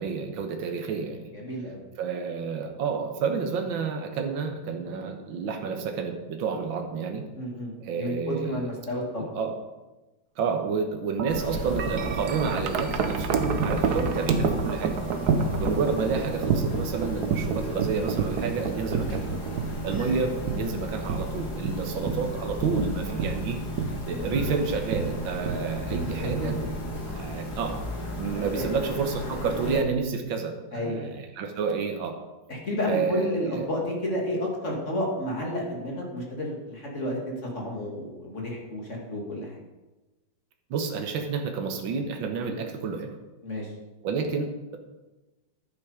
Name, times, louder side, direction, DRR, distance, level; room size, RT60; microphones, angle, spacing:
voice 1, 0.0-1.3 2.0-7.3 7.8-8.7 9.2-9.5 10.4-15.0 15.6-19.3 19.8-23.6 24.1-26.6 27.0-27.8 28.2-32.2 32.9-33.7 40.7-43.2 44.0-44.8, right 5 dB, 75° right, 4 dB, 1.9 m, -30 dB
voice 2, 1.3-1.8 7.3-9.3 15.2-15.3 20.0-20.4 24.1-24.3 26.2-26.5 28.3-28.7 30.7-31.1 32.5-39.6 43.4-43.7, left 1 dB, 35° left, -1 dB, 2.6 m, -31 dB
Wind chime, 11.2-27.4, right 5 dB, 60° right, 1.3 m, -30 dB
sound 1, 11.3-29.8, left 1 dB, 50° left, 2.4 m, -35 dB
11.0 x 9.4 x 5.0 m, 1.1 s
omnidirectional pair, 2.2 m